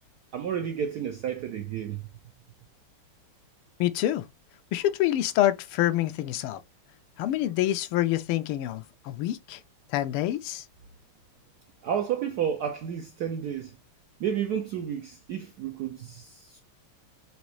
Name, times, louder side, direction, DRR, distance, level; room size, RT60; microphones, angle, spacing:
voice 1, 0.3-2.0 11.8-13.7 14.2-16.6, right 8 dB, 80° right, 0.8 m, -31 dB
voice 2, 3.8-4.3 4.7-6.6 7.2-9.6 9.9-10.6, left 13 dB, 80° left, 1.5 m, -26 dB
5.0 x 3.1 x 3.1 m
omnidirectional pair, 2.4 m